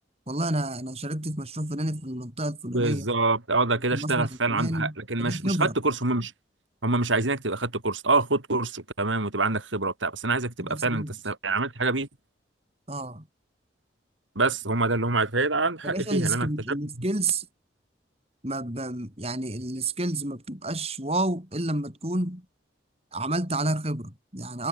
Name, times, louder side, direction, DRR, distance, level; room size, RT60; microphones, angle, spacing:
voice 1, 0.3-3.1 3.9-5.7 10.6-11.2 12.9-13.2 15.8-17.5 18.4-22.4 23.1-24.7, right 2 dB, 30° right, 7.1 m, -30 dB
voice 2, 2.7-6.3 6.8-12.1 14.4-16.8, right 3 dB, 90° right, 4.0 m, -26 dB
head